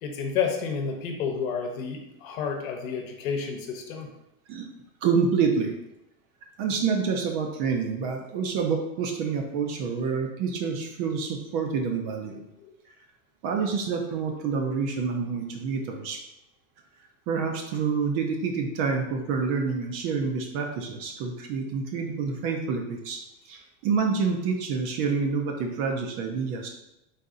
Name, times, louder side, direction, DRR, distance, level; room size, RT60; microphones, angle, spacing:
voice 1, 0.0-4.1 12.6-12.7, left 6 dB, 65° left, 3 dB, 0.9 m, -30 dB
voice 2, 5.0-5.7 6.6-12.5 13.4-16.2 17.3-23.2 23.5-26.7, right 5 dB, 35° right, 2 dB, 0.4 m, -27 dB
4.1 x 2.6 x 3.7 m, 0.90 s
supercardioid pair, 140°, 44 cm